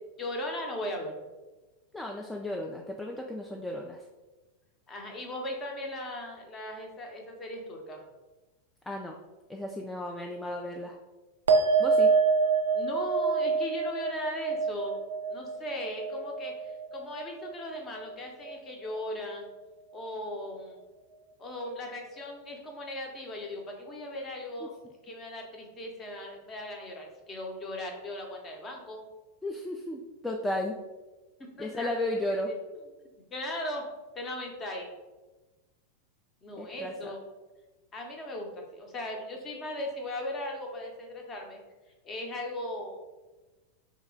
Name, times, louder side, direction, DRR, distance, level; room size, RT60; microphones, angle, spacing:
voice 1, 0.2-1.2 4.9-8.0 12.7-15.0 15.3-19.5 19.9-20.8 21.4-24.7 25.0-29.0 31.4-32.2 33.3-33.8 34.1-34.9 36.4-37.2 37.9-41.6 42.0-43.0, left 1 dB, 25° left, 1 dB, 0.8 m, -38 dB
voice 2, 1.9-4.0 8.9-9.2 9.5-11.0 11.8-12.1 24.6-24.7 29.4-30.8 31.6-32.5 36.6-37.1, left 1 dB, 5° left, 1 dB, 0.3 m, -34 dB
sound 1, 11.5-18.2 18.4-19.1, right 5 dB, 70° right, 0.3 m, -27 dB
3.1 x 2.8 x 3.7 m, 1.2 s
figure-of-eight pair, 90°, 0 cm